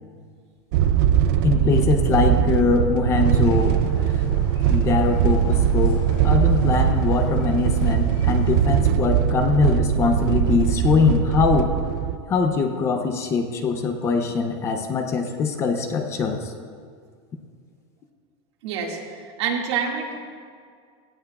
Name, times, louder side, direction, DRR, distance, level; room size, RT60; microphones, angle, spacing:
sound 1, 0.7-12.2, right 9 dB, 45° right, 0.4 m, -21 dB
voice 1, 1.4-3.8 4.7-11.7 12.3-16.5, left 5 dB, 20° left, 6 dB, 0.5 m, -22 dB
sound 2, 3.2-8.6, left 2 dB, 50° left, 2.9 m, -38 dB
voice 2, 18.6-20.3, right 6 dB, 75° right, 0 dB, 2.0 m, -27 dB
17.5 x 14.5 x 2.3 m, 2.1 s
supercardioid pair, 180°, 14 cm